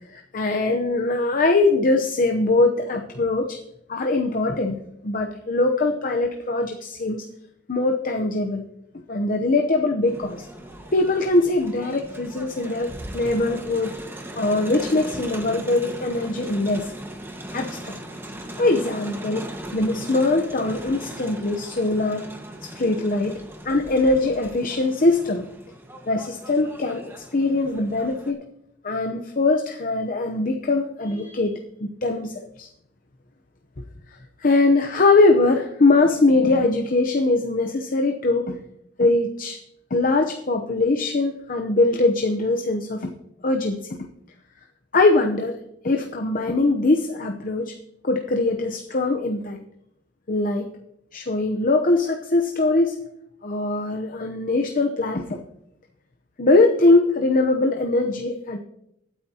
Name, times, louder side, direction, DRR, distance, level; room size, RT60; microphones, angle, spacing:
voice 1, 0.1-3.6 3.9-7.2 7.7-8.6 9.1-10.5 10.9-13.9 14.4-16.9 17.5-18.0 18.6-22.3 22.6-23.4 23.6-25.5 26.1-28.4 28.8-32.7 34.4-38.6 39.0-39.6 39.9-43.1 43.4-43.8 44.9-45.6 45.8-47.8 48.0-49.6 50.3-50.7 51.1-53.0 53.4-55.4 56.4-58.6, left 2 dB, 50° left, 4 dB, 0.8 m, -22 dB
Crowd, 10.1-28.3, right 1 dB, 15° right, 1.5 m, -38 dB
24.0 x 9.2 x 2.9 m, 0.80 s
head